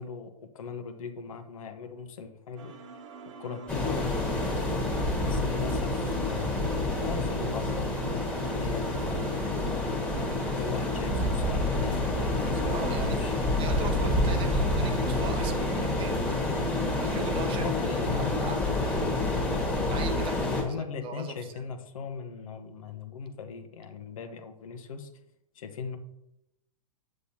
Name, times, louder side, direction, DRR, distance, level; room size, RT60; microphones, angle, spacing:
voice 1, 0.0-2.8 3.4-4.6 5.2-9.8 10.5-13.3 17.3-18.6 20.6-25.1 25.5-26.0, left 6 dB, 60° left, 7 dB, 1.1 m, -39 dB
sound 1, 2.6-18.6, right 4 dB, 55° right, 1.4 m, -44 dB
sound 2, 3.7-20.6, left 2 dB, 5° left, 1.7 m, -28 dB
voice 2, 12.7-13.2 13.6-16.1 17.0-18.6 19.8-21.6, right 6 dB, 25° right, 7 dB, 0.9 m, -40 dB
8.6 x 7.7 x 2.8 m, 0.84 s
figure-of-eight pair, 110°, 19 cm